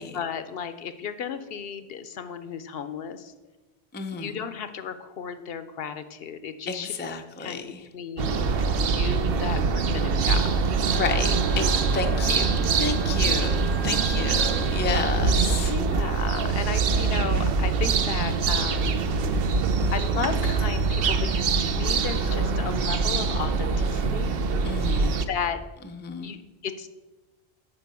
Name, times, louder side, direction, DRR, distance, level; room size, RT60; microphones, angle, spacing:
voice 1, 0.0-3.3 4.1-7.0 7.4-7.6 7.9-10.7 11.9-12.7 13.8-14.7 15.7-19.0 19.9-24.4 25.1-25.6 26.2-26.9, left 7 dB, 70° left, 11 dB, 0.8 m, -34 dB
voice 2, 3.9-4.4 6.7-7.8 10.9-15.7 24.6-25.3 26.0-26.4, left 4 dB, 15° left, 5 dB, 0.4 m, -31 dB
sound 1, 8.2-25.3, right 4 dB, 65° right, 0.8 m, -24 dB
Wind instrument woodwind instrument, 10.9-14.8, right 4 dB, 90° right, 3.8 m, -44 dB
9.8 x 4.1 x 6.7 m, 1.1 s
omnidirectional pair, 1.1 m